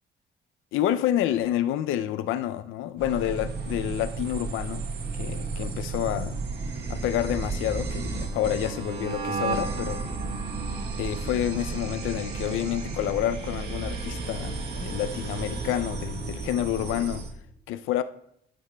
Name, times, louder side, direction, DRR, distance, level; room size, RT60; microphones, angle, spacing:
voice 1, 0.7-4.9 5.1-6.4 6.9-10.1 11.0-17.2 17.7-18.0, left 12 dB, 90° left, 0.4 m, -28 dB
sound 1, 3.0-17.3, right 4 dB, 55° right, 1.4 m, -33 dB
11.5 x 9.1 x 2.2 m
cardioid pair, 90°, 20 cm